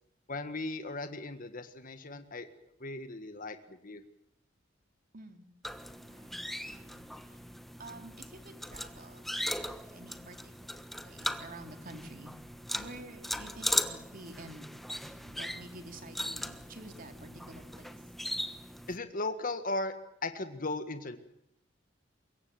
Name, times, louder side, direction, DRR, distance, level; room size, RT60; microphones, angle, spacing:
voice 1, 0.3-2.5 2.8-4.0 18.9-19.9 20.2-21.2, left 2 dB, 45° left, 9 dB, 1.7 m, -37 dB
voice 2, 5.1-5.4 6.0-7.4 7.8-12.3 12.7-14.6 15.0-18.0, right 2 dB, 45° right, 6 dB, 3.2 m, -50 dB
sound 1, 5.6-19.0, equal, ahead, 1.3 m, -39 dB
24.5 x 22.5 x 7.8 m, 0.73 s
head